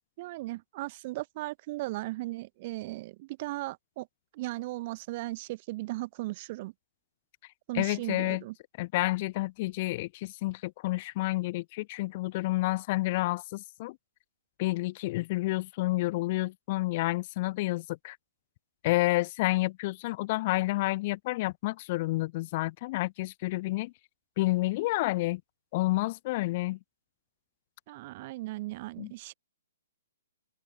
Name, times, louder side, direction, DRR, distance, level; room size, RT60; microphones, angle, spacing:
voice 1, 0.2-4.1 4.3-6.7 7.7-8.5 27.9-29.3, right 19 dB, 35° right, 1.1 m, -37 dB
voice 2, 7.7-8.4 8.8-14.0 14.6-18.2 18.8-23.9 24.4-25.4 25.7-26.8 29.0-29.1, left 20 dB, 35° left, 0.9 m, -29 dB
figure-of-eight pair, 125°, 0 cm